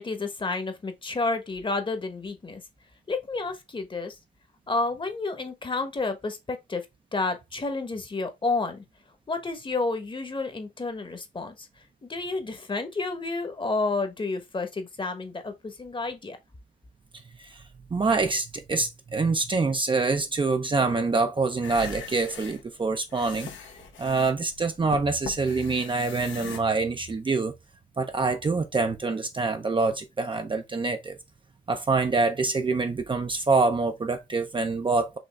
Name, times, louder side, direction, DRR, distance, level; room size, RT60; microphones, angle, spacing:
voice 1, 0.0-2.6 3.1-4.2 4.7-6.8 7.1-8.8 9.3-11.7 12.0-16.4, left 3 dB, 25° left, 1.1 m, -30 dB
voice 2, 17.9-23.5 24.0-27.5 28.0-31.2 31.7-35.2, right 3 dB, 25° right, 0.7 m, -25 dB
sound 1, 21.5-26.6, left 6 dB, 70° left, 1.1 m, -41 dB
5.2 x 3.0 x 3.4 m
cardioid pair, 90°, 20 cm